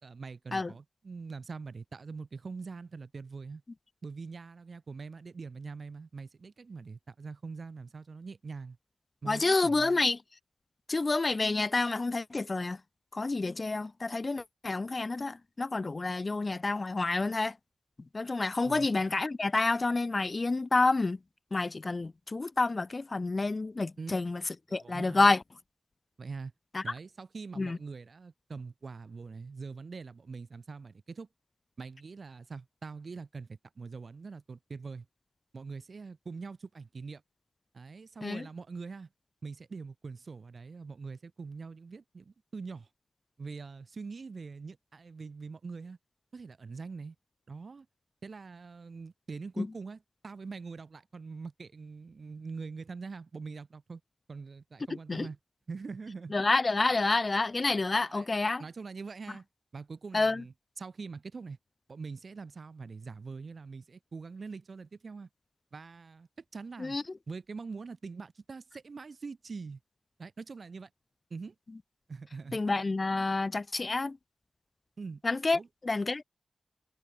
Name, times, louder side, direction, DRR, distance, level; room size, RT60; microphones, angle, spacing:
voice 1, 0.0-3.6 4.0-8.8 9.2-10.1 18.6-18.9 24.0-24.2 24.7-25.3 26.2-26.5 26.8-31.3 31.8-35.1 35.5-37.2 37.7-39.1 39.4-42.9 43.4-46.0 46.3-47.2 47.5-47.9 48.2-54.0 54.3-55.4 55.7-56.3 58.1-58.3 58.6-59.5 59.7-61.6 61.9-65.3 65.7-67.0 67.3-69.8 70.2-70.9 71.3-71.5 72.1-72.6 75.0-75.2 75.5-75.7, right 4 dB, 65° right, 4.2 m, -43 dB
voice 2, 9.3-10.2 10.9-12.8 13.1-17.5 18.1-21.2 21.5-24.4 24.7-25.4 26.7-26.8 27.6-27.8 38.2-38.4 49.6-49.7 55.1-55.3 56.3-58.6 60.1-60.4 66.8-67.0 72.5-74.2 75.2-76.2, left 3 dB, 40° left, 0.4 m, -29 dB
cardioid pair, 60°, 0 cm